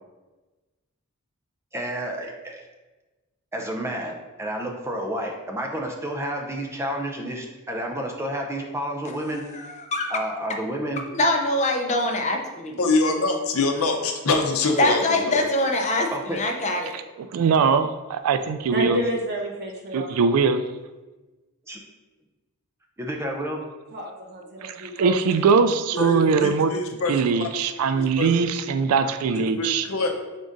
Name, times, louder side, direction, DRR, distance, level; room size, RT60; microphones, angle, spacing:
voice 1, 1.7-2.6 3.5-9.7 10.1-11.0 16.1-16.4 21.7-21.8 23.0-23.6, right 1 dB, 10° right, 2 dB, 0.5 m, -30 dB
voice 2, 9.5-10.1 11.1-12.8 14.8-16.9, left 1 dB, 35° left, 2 dB, 0.6 m, -24 dB
voice 3, 12.8-15.4 25.9-27.5 27.9-28.3 29.3-30.1, left 3 dB, 70° left, 3 dB, 0.7 m, -24 dB
voice 4, 16.9-19.0 19.9-20.6 24.6-26.7 27.1-29.9, right 5 dB, 80° right, 10 dB, 0.3 m, -21 dB
voice 5, 18.7-20.3 23.9-25.5, equal, 50° right, 0 dB, 0.8 m, -30 dB
3.9 x 3.6 x 3.8 m, 1.2 s
head